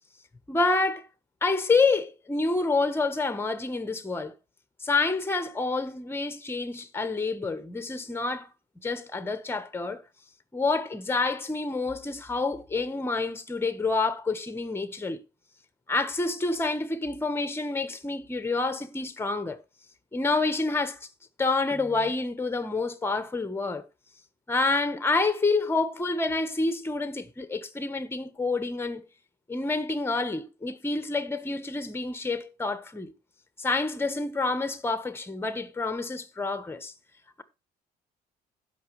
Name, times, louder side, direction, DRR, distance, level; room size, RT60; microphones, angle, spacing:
voice 1, 0.5-1.1 1.4-4.3 4.8-8.5 8.8-10.0 10.5-15.2 15.9-19.6 20.1-21.0 21.4-23.8 24.5-29.0 29.5-33.1 33.6-36.9, left 3 dB, 15° left, 1.3 m, -28 dB
16.0 x 6.1 x 3.2 m
cardioid pair, 110°, 17 cm